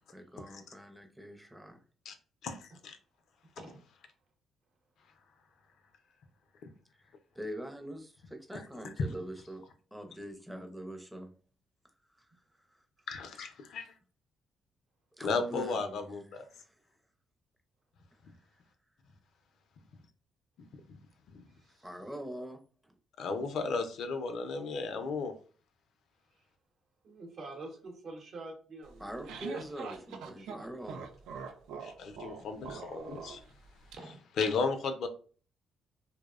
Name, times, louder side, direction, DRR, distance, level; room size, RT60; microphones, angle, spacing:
voice 1, 0.1-1.8 7.3-9.7 9.9-11.4 12.2-12.3 15.2-16.8 21.8-22.9 29.0-31.0, right 1 dB, 5° right, 4 dB, 0.5 m, -44 dB
voice 2, 2.4-3.0 13.1-13.9 15.2-16.4 21.3-21.4 23.2-25.3 31.8-33.4 34.4-35.1, left 4 dB, 70° left, 7 dB, 0.4 m, -34 dB
voice 3, 3.4-3.8 21.5-21.9 26.3-26.5 27.0-29.6 29.9-30.1 30.4-30.7 33.9-34.2, right 2 dB, 60° right, 3 dB, 0.8 m, -48 dB
sound 1, 28.9-34.0, right 6 dB, 85° right, 0.3 m, -44 dB
2.6 x 2.0 x 2.3 m, 0.39 s
cardioid pair, 90°, 0 cm